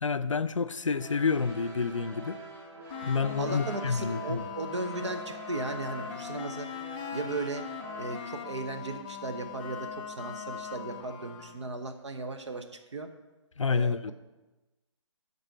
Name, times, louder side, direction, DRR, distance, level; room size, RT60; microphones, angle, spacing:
voice 1, 0.0-2.4 3.0-4.4 13.6-14.1, left 5 dB, 80° left, 0.5 m, -29 dB
sound 1, 0.9-8.3, right 2 dB, 45° right, 1.9 m, -46 dB
sound 2, 2.9-11.7, left 6 dB, 20° left, 0.4 m, -40 dB
voice 2, 3.4-6.7 7.1-7.6 8.0-12.6 12.9-13.1 13.7-14.1, right 3 dB, 65° right, 0.9 m, -36 dB
11.0 x 4.1 x 6.0 m
figure-of-eight pair, 140°, 16 cm